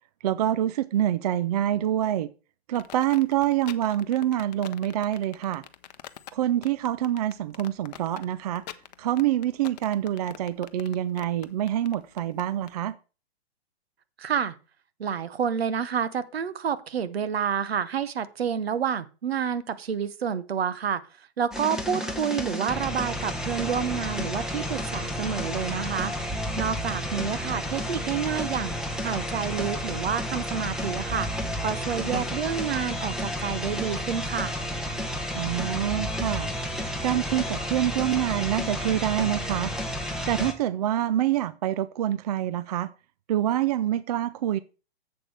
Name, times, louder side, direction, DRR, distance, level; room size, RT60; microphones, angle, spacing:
voice 1, 0.2-2.3 2.7-5.6 6.3-8.6 9.0-13.0 32.1-32.2 35.3-36.5 37.0-39.7 40.3-42.9 43.3-44.6, right 12 dB, 40° right, 0.4 m, -26 dB
sound 1, 2.7-12.7, left 13 dB, 40° left, 0.7 m, -44 dB
voice 2, 14.2-14.5 15.0-21.0 21.4-26.1 26.6-28.7 29.0-34.5, right 7 dB, 70° right, 1.0 m, -29 dB
sound 2, 21.5-40.5, equal, ahead, 1.1 m, -31 dB
10.5 x 7.7 x 3.3 m
figure-of-eight pair, 120°, 32 cm